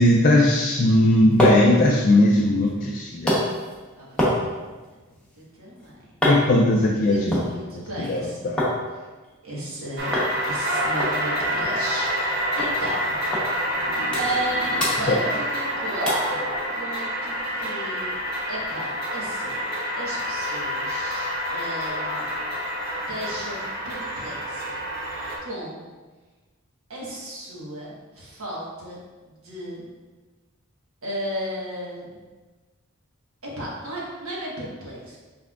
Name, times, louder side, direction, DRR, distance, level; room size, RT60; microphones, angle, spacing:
voice 1, 0.0-3.4 6.2-8.2 8.4-8.6 15.1-15.2, left 1 dB, 40° left, -1 dB, 0.3 m, -19 dB
sound 1, 0.9-8.8 9.1-9.8 10.1-10.3 10.6-10.7 11.0-12.3 12.6-12.7 13.3-13.5 13.8-14.5 14.8-15.7 16.1-16.3 16.8-16.9, equal, 5° left, 0.8 m, -27 dB
voice 2, 4.0-5.0 5.3-6.1 7.1-8.6 8.9-9.1 9.4-13.7 14.1-18.1 18.5-22.3 23.0-24.8 25.4-25.8 26.9-29.9 31.0-32.2 33.4-35.2, right 1 dB, 80° right, -5 dB, 1.3 m, -35 dB
sound 2, 10.0-25.4, equal, 45° right, 0.8 m, -27 dB
5.7 x 3.4 x 2.4 m, 1.3 s
head